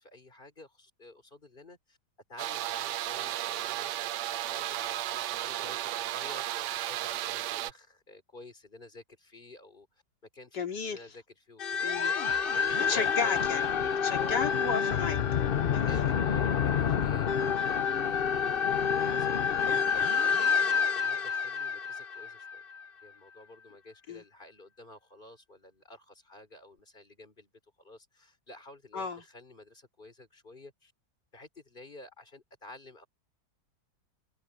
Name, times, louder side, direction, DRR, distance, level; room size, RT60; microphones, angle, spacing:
voice 1, 0.0-2.0 2.3-3.9 4.3-10.0 10.3-11.9 12.5-13.2 14.1-14.6 15.9-19.6 20.1-22.6 23.0-30.9 31.3-33.1, left 2 dB, 25° left, 4.1 m, -51 dB
sound 1, 2.4-7.7, right 14 dB, 80° right, 1.2 m, -34 dB
voice 2, 10.5-11.0 11.8-12.1 12.9-15.2 15.7-16.0 24.1-24.2 28.9-29.2, left 5 dB, 70° left, 3.2 m, -33 dB
sound 2, 11.6-22.8, left 7 dB, 55° left, 0.6 m, -28 dB
omnidirectional pair, 1.9 m